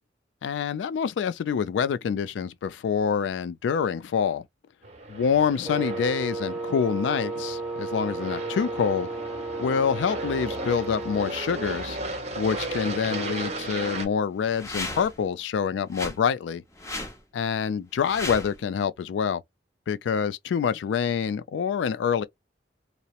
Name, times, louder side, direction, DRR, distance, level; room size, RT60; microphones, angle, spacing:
voice 1, 0.4-4.4 5.1-9.1 9.6-12.0 12.4-16.6 17.3-19.4 19.9-22.2, left 7 dB, 85° left, 0.3 m, -26 dB
Aircraft, 4.8-14.1, right 2 dB, 40° right, 0.8 m, -35 dB
Wind instrument woodwind instrument, 5.6-11.4, right 3 dB, 5° right, 0.3 m, -33 dB
sound 1, 14.4-15.2 15.9-16.2 16.7-17.2 18.0-18.6, left 2 dB, 15° left, 0.7 m, -35 dB
2.8 x 2.0 x 2.4 m
head